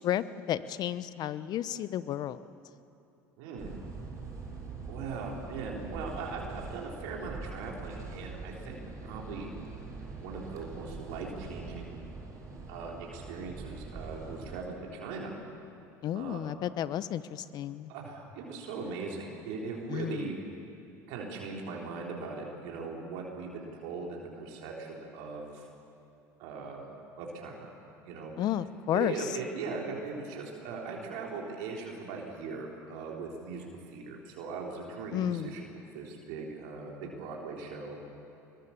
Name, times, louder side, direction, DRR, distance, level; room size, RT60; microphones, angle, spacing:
voice 1, 0.0-2.4 16.0-17.9 19.9-20.3 28.4-29.3 35.1-35.5, left 11 dB, 55° left, 15 dB, 0.9 m, -32 dB
voice 2, 3.4-3.7 4.9-9.5 10.2-12.0 12.7-15.3 16.1-16.4 17.9-20.3 21.1-25.7 26.4-27.7 28.0-28.3 28.9-35.6 35.9-38.0, right 4 dB, 75° right, -1 dB, 3.7 m, -39 dB
sound 1, 3.6-14.6, right 3 dB, 40° right, 7.2 m, -43 dB
24.0 x 21.5 x 7.2 m, 2.7 s
hypercardioid pair, 75°, 8 cm